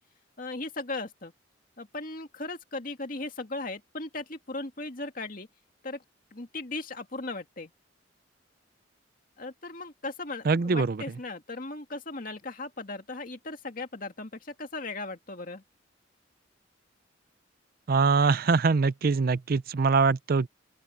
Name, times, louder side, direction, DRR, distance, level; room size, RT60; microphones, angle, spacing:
voice 1, 0.4-1.3 1.8-5.5 5.8-6.0 6.3-7.7 9.4-15.6, left 2 dB, 45° left, 2.3 m, -37 dB
voice 2, 10.5-11.0 17.9-20.5, right 4 dB, 50° right, 0.5 m, -23 dB
open air
head